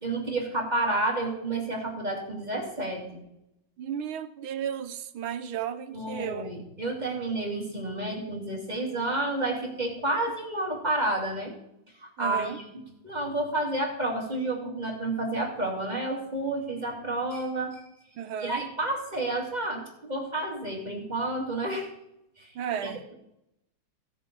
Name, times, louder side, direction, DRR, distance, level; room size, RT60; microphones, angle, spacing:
voice 1, 0.0-3.2 5.9-11.5 12.0-17.8 18.4-21.9 22.4-23.1, right 2 dB, 20° right, -2 dB, 2.5 m, -30 dB
voice 2, 3.8-6.4 12.2-12.6 18.2-18.6 22.6-23.0, right 8 dB, 75° right, 10 dB, 1.5 m, -33 dB
16.0 x 7.6 x 5.3 m, 0.82 s
omnidirectional pair, 2.4 m